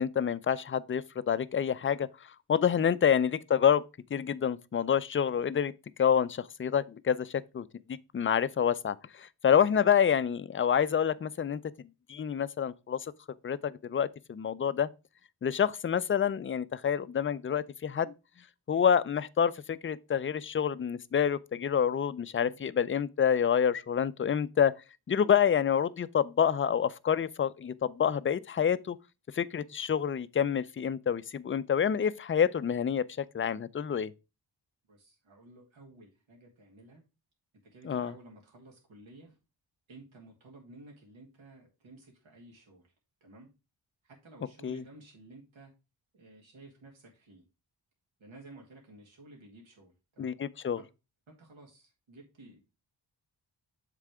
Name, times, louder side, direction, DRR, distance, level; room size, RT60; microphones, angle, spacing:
voice 1, 0.0-2.1 2.5-3.8 4.1-5.7 6.0-13.1 13.4-14.9 15.4-18.1 18.7-24.7 25.1-29.0 29.3-34.1 37.8-38.1 44.6-44.8 50.2-50.8, left 8 dB, 30° left, 0.4 m, -28 dB
voice 2, 9.6-9.9 22.3-22.6 34.9-37.0 37.7-39.4 39.9-42.9 43.2-43.5 44.0-45.7 46.1-47.4 48.2-50.3 50.8-50.9 51.3-52.6, right 2 dB, 75° right, 2.0 m, -54 dB
7.3 x 3.3 x 4.8 m
cardioid pair, 60°, 47 cm